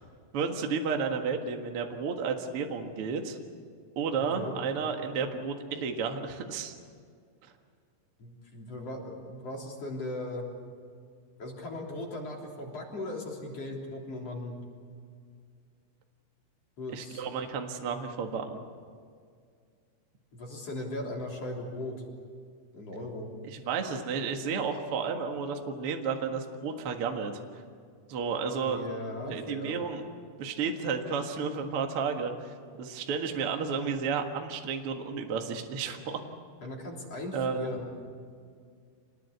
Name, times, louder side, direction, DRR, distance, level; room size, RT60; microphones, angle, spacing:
voice 1, 0.3-3.4 3.9-6.7 16.9-18.6 23.4-27.4 28.1-28.8 29.3-30.0 30.4-36.2 37.3-37.7, right 5 dB, 75° right, 3 dB, 1.2 m, -32 dB
voice 2, 4.2-4.5 8.2-10.4 11.4-14.5 16.8-17.2 20.3-21.9 22.7-23.3 28.6-29.8 36.6-37.9, left 1 dB, 35° left, -1 dB, 4.1 m, -38 dB
27.0 x 20.0 x 8.4 m, 2.1 s
omnidirectional pair, 5.5 m